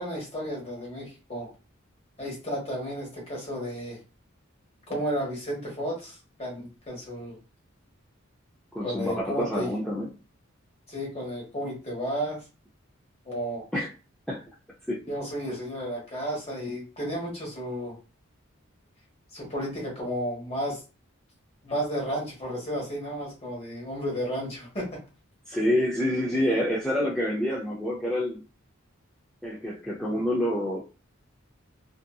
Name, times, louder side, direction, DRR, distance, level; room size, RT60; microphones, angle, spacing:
voice 1, 0.0-1.5 2.2-4.0 4.9-7.4 8.8-9.7 10.9-12.4 13.3-13.6 15.1-18.0 19.3-20.8 21.6-25.0, equal, 30° left, -3 dB, 1.2 m, -33 dB
voice 2, 8.7-10.1 13.7-13.9 14.3-14.4 14.9-15.0 25.5-28.4 29.4-30.8, equal, 5° left, -6 dB, 0.4 m, -27 dB
2.6 x 2.4 x 2.2 m, 0.33 s
head